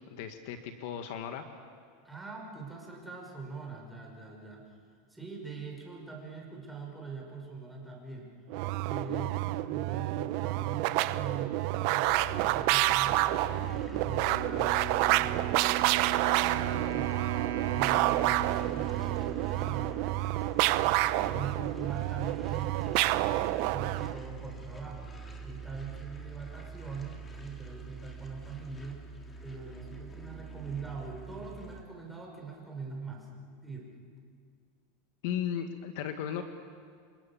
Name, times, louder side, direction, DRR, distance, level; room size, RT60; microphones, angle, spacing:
voice 1, 0.1-1.4 35.2-36.4, left 9 dB, 55° left, 7 dB, 1.7 m, -35 dB
voice 2, 2.0-4.8 5.1-8.3 8.8-14.8 15.1-17.3 17.7-20.0 20.3-25.1 25.4-29.0 29.4-33.3 33.6-33.9, right 4 dB, 5° right, -2 dB, 5.3 m, -43 dB
sound 1, 8.5-24.2, right 17 dB, 50° right, 0.7 m, -29 dB
sound 2, 12.0-31.8, right 3 dB, 15° left, 2.3 m, -44 dB
Wind instrument woodwind instrument, 14.3-20.3, right 10 dB, 85° right, 1.7 m, -37 dB
29.5 x 25.0 x 7.2 m, 2.1 s
supercardioid pair, 160°, 0 cm